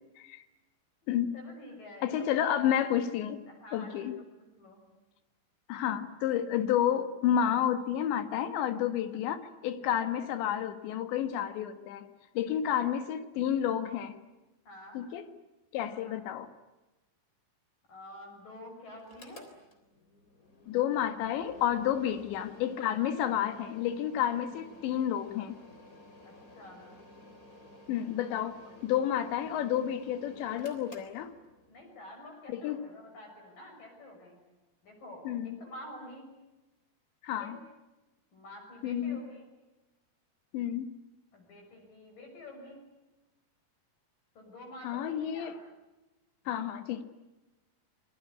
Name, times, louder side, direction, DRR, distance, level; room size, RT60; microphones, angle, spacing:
voice 1, 1.3-2.8 3.5-4.1 4.6-4.8 10.0-10.3 12.5-12.9 14.6-15.0 15.9-16.2 17.9-19.4 22.1-22.2 26.2-26.8 31.7-34.4 34.8-36.3 37.3-37.6 38.3-39.5 41.3-42.8 44.4-45.6, left 1 dB, 50° left, 1 dB, 7.7 m, -49 dB
voice 2, 2.0-3.4 3.7-4.2 5.7-12.1 12.4-14.2 15.0-15.3 15.7-16.5 20.7-25.6 27.9-31.3 32.5-32.8 35.3-35.6 37.2-37.6 38.8-39.2 40.5-40.9 44.8-45.5 46.5-47.0, left 10 dB, 80° left, 10 dB, 3.7 m, -30 dB
Mechanical fan, 19.0-31.8, left 2 dB, 20° left, 3.3 m, -53 dB
27.0 x 21.5 x 9.7 m, 1.0 s
omnidirectional pair, 5.1 m